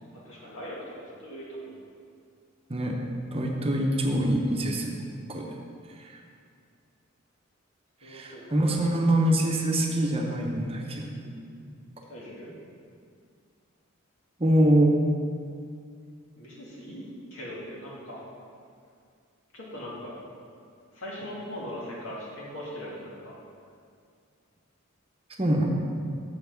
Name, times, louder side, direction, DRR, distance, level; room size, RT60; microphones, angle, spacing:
voice 1, 0.1-1.8 8.0-8.6 12.1-12.5 16.3-17.1 17.3-18.2 19.5-20.1 20.9-23.3, equal, 80° left, -5 dB, 2.3 m, -40 dB
voice 2, 3.3-4.9 5.3-5.5 6.0-6.1 8.0-11.4 11.6-11.7 14.4-15.0 25.4-25.7, right 1 dB, 30° right, 0 dB, 0.9 m, -24 dB
7.1 x 5.8 x 5.9 m, 2.3 s
head